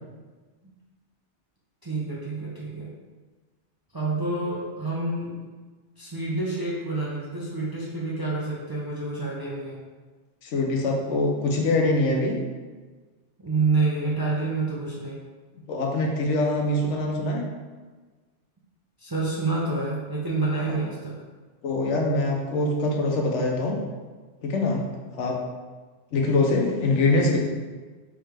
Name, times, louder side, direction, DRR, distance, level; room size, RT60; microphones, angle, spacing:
voice 1, 1.8-2.9 3.9-5.4 6.0-9.8 13.4-15.2 19.0-21.2, right 3 dB, 35° right, -6 dB, 0.4 m, -28 dB
voice 2, 10.4-12.4 15.7-17.4 20.7-20.8 21.6-23.8 24.4-24.8 25.1-25.4 26.1-27.4, left 2 dB, 85° left, 1 dB, 1.0 m, -23 dB
3.6 x 3.1 x 3.3 m, 1.3 s
omnidirectional pair, 1.2 m